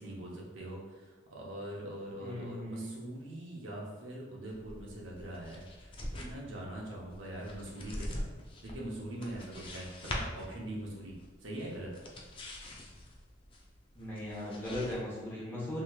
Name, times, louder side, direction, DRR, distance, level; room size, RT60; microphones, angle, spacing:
voice 1, 0.0-8.3 8.6-11.2 11.4-12.0, right 1 dB, 80° right, -3 dB, 0.7 m, -42 dB
voice 2, 2.2-2.9 13.9-15.8, left 1 dB, 10° left, -8 dB, 1.1 m, -38 dB
sound 1, 4.5-14.9, left 1 dB, 25° left, 0.4 m, -44 dB
3.2 x 2.8 x 2.4 m, 1.2 s
head